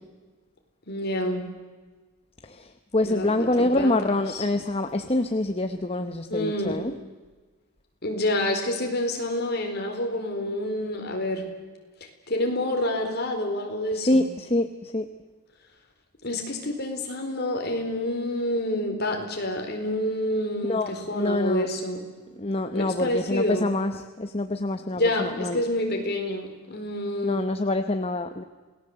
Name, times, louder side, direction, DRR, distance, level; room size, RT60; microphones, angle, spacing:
voice 1, 0.9-1.5 3.0-4.4 6.3-6.8 8.0-11.4 12.3-14.3 16.2-22.0 22.7-23.7 24.9-27.4, left 1 dB, 45° left, 3 dB, 4.3 m, -28 dB
voice 2, 2.4-6.9 13.9-15.1 20.7-21.7 22.4-25.6 27.2-28.4, left 2 dB, 25° left, 7 dB, 0.9 m, -26 dB
28.0 x 18.5 x 8.0 m, 1.3 s
head